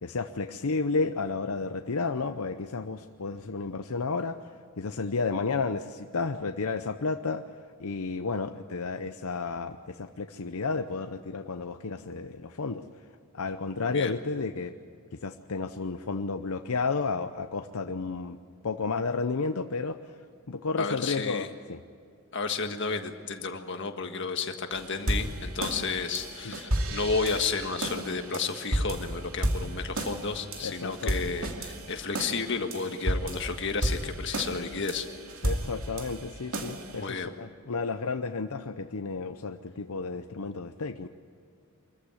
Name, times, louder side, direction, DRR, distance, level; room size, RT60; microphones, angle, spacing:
voice 1, 0.0-4.4 4.8-7.4 7.8-12.9 13.3-14.7 15.2-18.4 18.6-20.0 20.5-21.8 30.6-31.1 35.4-41.1, left 4 dB, 80° left, 8 dB, 0.7 m, -32 dB
voice 2, 20.8-21.5 22.3-35.1 37.0-37.3, left 4 dB, 55° left, 6 dB, 1.6 m, -32 dB
sound 1, 24.7-37.1, right 1 dB, 70° right, 2.5 m, -33 dB
24.5 x 15.0 x 9.6 m, 2.3 s
head